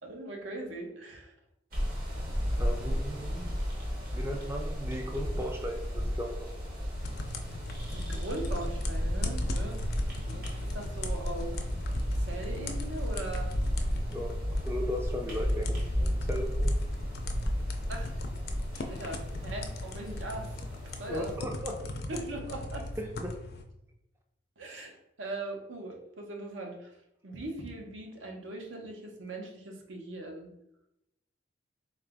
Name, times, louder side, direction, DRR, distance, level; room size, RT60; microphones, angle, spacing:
voice 1, 0.0-1.3 7.9-9.8 10.2-11.6 12.1-13.6 17.9-18.1 18.9-20.5 20.8-21.4 22.1-22.9 24.6-27.0 27.2-30.5, right 2 dB, 80° right, 2 dB, 0.7 m, -40 dB
sound 1, 1.7-21.4, equal, 50° right, 0.9 m, -33 dB
voice 2, 2.6-3.5 4.1-6.5 14.1-14.3 14.7-16.7 21.1-21.7 23.0-23.4, equal, 15° right, 2 dB, 0.3 m, -36 dB
sound 2, 7.0-23.6, left 2 dB, 55° left, 0.4 m, -40 dB
3.8 x 2.4 x 3.4 m, 0.84 s
head